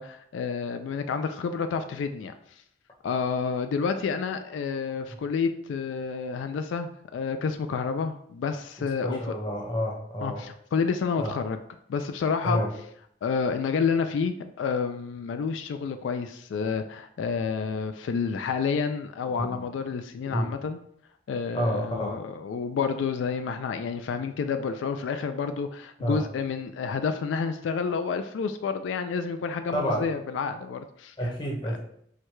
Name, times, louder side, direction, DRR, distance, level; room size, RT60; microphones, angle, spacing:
voice 1, 0.0-2.3 3.0-9.2 10.2-11.6 11.9-12.6 13.2-20.8 21.3-31.1 31.6-31.8, left 5 dB, 85° left, 9 dB, 0.3 m, -29 dB
voice 2, 9.0-10.4 11.2-11.3 12.4-12.7 19.4-19.6 20.3-20.5 21.5-22.2 26.0-26.2 29.7-30.1 31.2-31.8, equal, 25° left, -1 dB, 0.9 m, -29 dB
4.6 x 2.2 x 4.5 m, 0.68 s
head